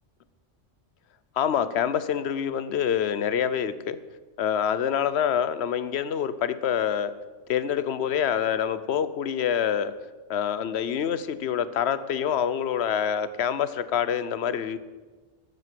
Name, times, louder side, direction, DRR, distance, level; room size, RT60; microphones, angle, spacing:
voice 1, 1.4-4.0 4.4-7.1 7.5-9.9 10.3-14.8, left 8 dB, 65° left, 14 dB, 0.9 m, -26 dB
14.0 x 8.0 x 7.6 m, 1.3 s
omnidirectional pair, 1.3 m